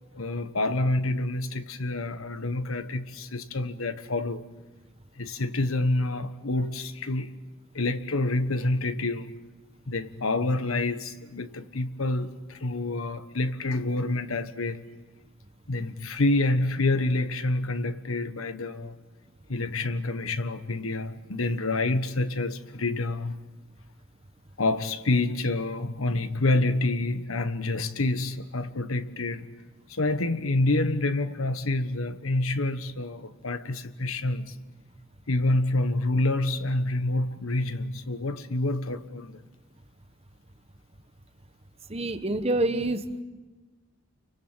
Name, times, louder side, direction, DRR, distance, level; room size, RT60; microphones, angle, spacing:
voice 1, 0.1-4.4 5.2-7.4 7.7-9.4 9.9-14.8 15.7-19.0 19.5-23.4 24.6-29.5 29.9-34.6 35.3-39.4, left 2 dB, 85° left, 1.3 m, -27 dB
voice 2, 41.9-43.2, right 2 dB, 30° right, 1.3 m, -27 dB
29.5 x 24.0 x 7.4 m
head